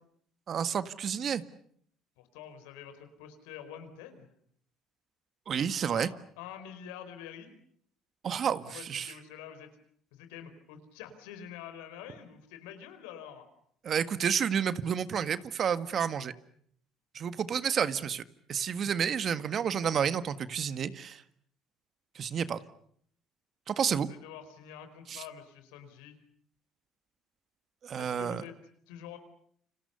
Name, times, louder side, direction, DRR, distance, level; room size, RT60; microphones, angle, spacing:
voice 1, 0.5-1.4 5.5-6.1 8.2-9.1 13.8-16.3 17.2-18.2 18.5-21.2 22.2-22.6 23.7-24.1 25.1-25.2 27.8-28.4, right 7 dB, 50° right, 13 dB, 1.6 m, -30 dB
voice 2, 2.2-4.3 5.9-6.1 6.4-7.6 8.7-9.7 10.1-13.5 24.0-26.2 28.0-28.5 28.9-29.2, left 9 dB, 90° left, 9 dB, 4.6 m, -46 dB
29.5 x 26.0 x 6.9 m, 0.65 s
supercardioid pair, 80°, 0 cm